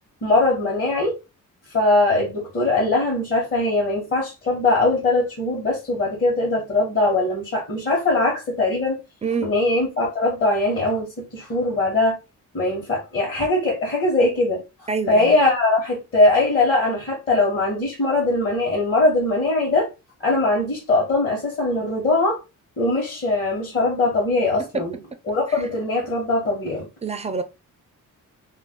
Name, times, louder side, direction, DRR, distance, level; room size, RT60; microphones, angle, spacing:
voice 1, 0.2-1.1 1.7-9.0 9.4-12.1 12.5-14.6 15.1-19.9 20.2-22.4 22.8-25.0 25.3-26.9, left 2 dB, 40° left, 1.1 m, -21 dB
voice 2, 9.2-9.5 14.9-15.3 27.0-27.4, right 5 dB, 20° right, 0.3 m, -26 dB
2.5 x 2.2 x 3.5 m
cardioid pair, 125°, 32 cm